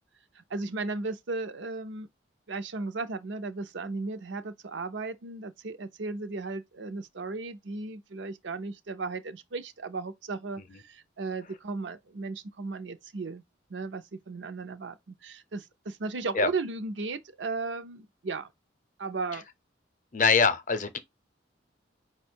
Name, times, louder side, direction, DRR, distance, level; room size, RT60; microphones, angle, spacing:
voice 1, 0.4-2.1 2.5-13.4 13.7-18.5 19.0-19.4, right 3 dB, 75° right, 0.6 m, -35 dB
voice 2, 20.1-21.0, left 5 dB, 40° left, 0.6 m, -23 dB
5.1 x 2.3 x 4.4 m
head